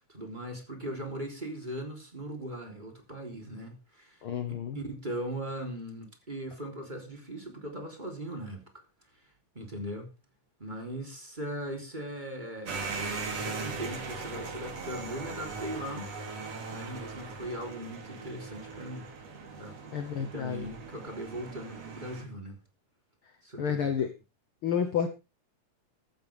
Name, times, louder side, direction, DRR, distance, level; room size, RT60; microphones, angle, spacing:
voice 1, 0.1-8.8 9.6-10.1 10.6-13.0 13.3-16.1 16.7-19.1 19.6-22.6 23.4-24.1, right 1 dB, 15° right, 3.4 m, -39 dB
voice 2, 4.2-4.8 19.9-20.7 23.6-24.1 24.6-25.1, left 7 dB, 60° left, 1.6 m, -30 dB
sound 1, 12.7-22.2, right 4 dB, 60° right, 3.7 m, -39 dB
15.0 x 13.5 x 3.5 m
omnidirectional pair, 3.3 m